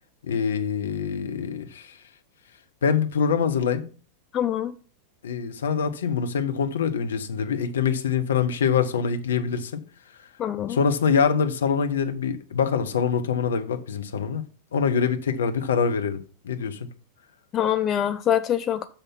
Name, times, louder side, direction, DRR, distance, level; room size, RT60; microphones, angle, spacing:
voice 1, 0.3-2.0 2.8-3.9 5.2-9.8 10.7-14.4 14.7-16.9, left 6 dB, 65° left, 0.8 m, -24 dB
voice 2, 4.3-4.7 10.4-10.8 17.5-18.9, left 10 dB, 30° left, 0.4 m, -24 dB
6.8 x 5.8 x 5.7 m
figure-of-eight pair, 90°, 0 cm